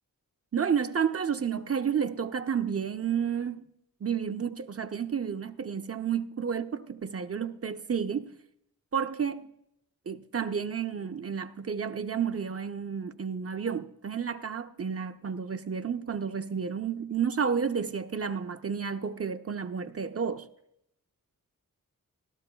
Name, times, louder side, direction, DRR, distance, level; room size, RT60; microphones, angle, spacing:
voice 1, 0.5-3.6 4.0-8.3 8.9-9.5 10.1-20.5, right 7 dB, 45° right, 0.6 m, -31 dB
17.5 x 12.5 x 2.3 m
wide cardioid pair, 105°, 35 cm